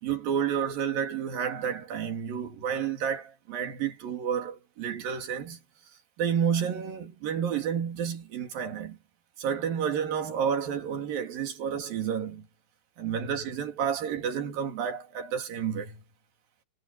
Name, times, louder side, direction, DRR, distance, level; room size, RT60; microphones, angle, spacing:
voice 1, 0.0-5.6 6.2-9.0 9.4-12.5 13.0-16.0, right 8 dB, 50° right, 4.0 m, -30 dB
omnidirectional pair, 5.6 m